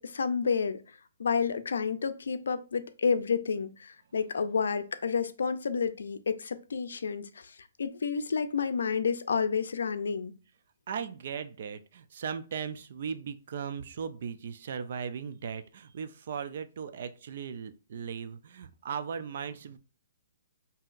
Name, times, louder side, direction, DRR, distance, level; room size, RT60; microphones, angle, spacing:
voice 1, 0.0-10.4, left 5 dB, 90° left, 0.4 m, -30 dB
voice 2, 10.9-19.8, right 7 dB, 50° right, 0.4 m, -37 dB
5.6 x 2.7 x 2.5 m
hypercardioid pair, 170°, 0 cm